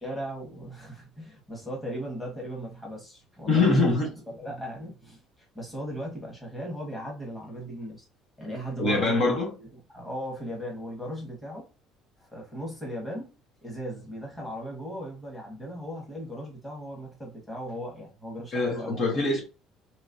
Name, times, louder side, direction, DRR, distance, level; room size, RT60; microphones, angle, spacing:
voice 1, 0.0-3.9 4.3-5.2 5.5-8.0 8.4-9.2 9.6-11.6 12.2-13.3 13.6-18.9, equal, 10° left, 1.4 m, -37 dB
voice 2, 3.5-4.1 8.8-9.5 18.5-19.4, left 3 dB, 45° left, 1.2 m, -23 dB
3.1 x 3.1 x 2.6 m
cardioid pair, 145°, 0 cm